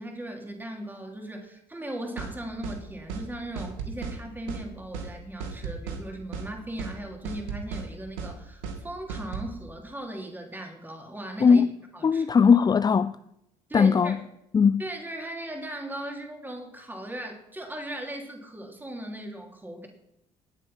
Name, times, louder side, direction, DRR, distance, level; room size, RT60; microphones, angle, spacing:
voice 1, 0.0-11.6 11.9-12.2 13.7-14.2 14.8-19.9, right 1 dB, 10° right, 3.4 m, -38 dB
sound 1, 2.2-2.3 2.6-2.8 3.1-3.3 3.6-4.2 4.5-4.6 4.9-5.1 5.4-6.0 6.3-6.5 6.8-6.9 7.2-7.9 8.2-8.3 8.6-8.8 9.1-9.5, right 6 dB, 80° right, 2.1 m, -35 dB
voice 2, 11.4-13.2 13.7-14.2 14.5-14.8, left 6 dB, 25° left, 0.5 m, -20 dB
19.5 x 7.6 x 5.7 m
hypercardioid pair, 60°, 16 cm